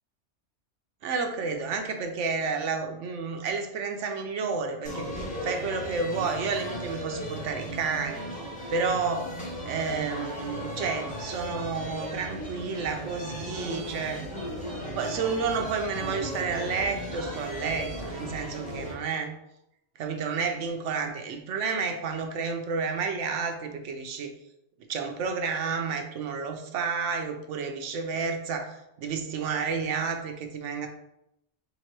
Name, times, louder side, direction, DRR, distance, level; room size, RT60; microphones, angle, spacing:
voice 1, 1.0-8.3 8.7-9.3 9.6-14.3 14.9-19.3 20.0-24.3 24.9-30.9, right 5 dB, 85° right, 5 dB, 0.9 m, -31 dB
sound 1, 4.8-18.9, equal, 5° left, 1.0 m, -36 dB
3.4 x 2.9 x 4.4 m, 0.82 s
omnidirectional pair, 1.2 m